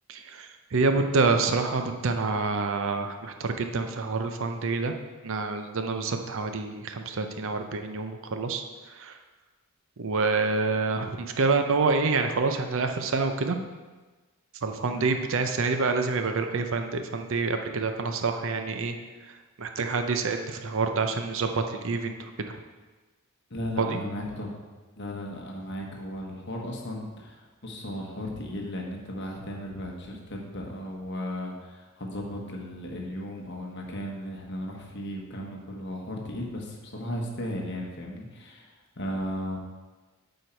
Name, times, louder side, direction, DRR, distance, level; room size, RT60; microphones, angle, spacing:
voice 1, 0.1-4.9 5.2-9.2 10.0-13.6 14.6-18.9 19.3-22.6 23.8-24.0, right 4 dB, 60° right, 6 dB, 0.6 m, -27 dB
voice 2, 23.5-24.6 25.0-39.6, left 1 dB, 55° left, 0 dB, 1.3 m, -35 dB
7.9 x 4.5 x 4.5 m, 1.3 s
head